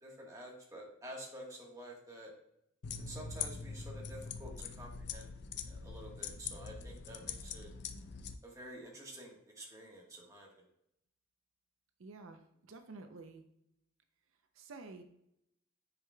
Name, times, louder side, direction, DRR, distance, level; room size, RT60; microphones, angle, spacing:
voice 1, 0.0-2.3 3.0-5.3 5.7-7.7 8.4-10.6, equal, 15° right, -2 dB, 1.3 m, -50 dB
sound 1, 2.8-8.4, left 6 dB, 55° left, 0.5 m, -43 dB
voice 2, 12.0-13.4 14.6-15.0, right 3 dB, 75° right, 6 dB, 0.6 m, -50 dB
9.6 x 4.8 x 2.3 m, 0.77 s
head